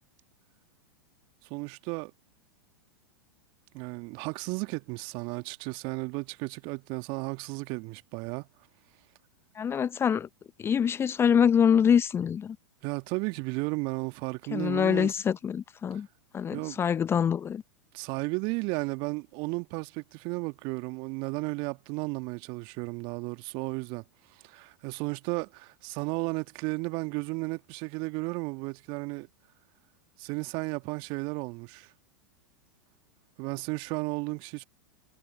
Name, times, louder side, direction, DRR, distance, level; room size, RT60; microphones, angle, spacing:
voice 1, 1.5-2.1 3.7-8.5 12.8-15.1 15.9-16.0 16.5-16.8 17.9-24.0 24.3-29.3 30.2-31.9 33.4-34.6, right 29 dB, 45° right, 1.6 m, -34 dB
voice 2, 9.6-10.3 10.6-12.6 14.5-16.1 16.3-17.6, left 7 dB, 20° left, 0.9 m, -25 dB
figure-of-eight pair, 95°, 11 cm